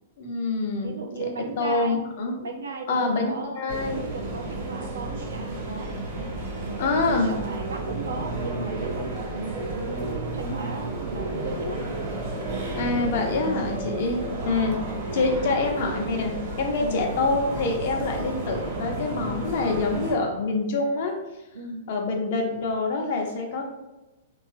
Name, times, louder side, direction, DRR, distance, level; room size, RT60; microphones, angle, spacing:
voice 1, 0.2-0.9 1.6-2.5 2.9-4.0 6.8-7.3 12.8-14.7 15.1-21.1 21.9-23.6, left 3 dB, 60° left, 2 dB, 0.6 m, -26 dB
voice 2, 0.8-2.0 2.4-3.6 4.1-5.9 6.6-11.9 12.5-13.3 15.4-15.5 16.8-17.1 21.5-21.9, right 3 dB, 80° right, 2 dB, 0.4 m, -36 dB
sound 1, 3.7-20.1, right 2 dB, 55° right, 1.0 m, -32 dB
sound 2, 4.5-16.0, right 2 dB, 10° right, 0.5 m, -46 dB
2.9 x 2.3 x 2.5 m, 1.0 s
hypercardioid pair, 110°, 0 cm